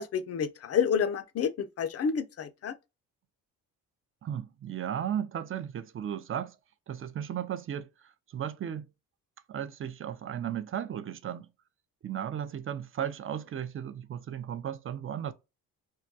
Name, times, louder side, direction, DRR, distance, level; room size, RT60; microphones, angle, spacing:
voice 1, 0.0-2.7, left 7 dB, 45° left, 0.4 m, -29 dB
voice 2, 4.2-6.6 6.9-8.9 9.5-11.5 12.0-15.3, right 9 dB, 35° right, 0.4 m, -35 dB
2.2 x 2.2 x 2.6 m
supercardioid pair, 70°, 37 cm